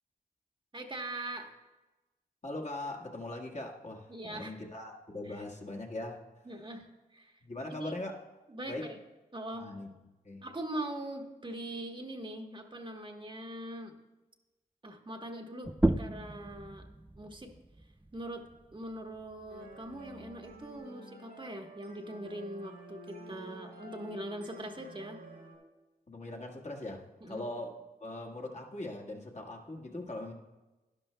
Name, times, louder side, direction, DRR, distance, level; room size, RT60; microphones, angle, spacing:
voice 1, 0.7-1.5 4.1-4.5 5.2-5.4 6.5-7.3 7.8-8.0 8.5-9.0 9.3-9.7 10.4-14.0 14.8-16.9 17.1-17.5 18.1-18.5 18.7-25.2 27.2-27.4, right 1 dB, 30° right, 4 dB, 1.2 m, -42 dB
voice 2, 2.4-6.2 7.4-8.2 8.7-8.8 9.5-9.9 10.2-10.4 26.1-30.3, left 2 dB, 45° left, 1 dB, 1.6 m, -41 dB
sound 1, 15.6-20.9, right 1 dB, 10° right, 0.4 m, -36 dB
sound 2, 19.5-25.6, right 2 dB, 85° right, 2.6 m, -50 dB
11.5 x 11.0 x 2.2 m, 1.1 s
cardioid pair, 45°, 17 cm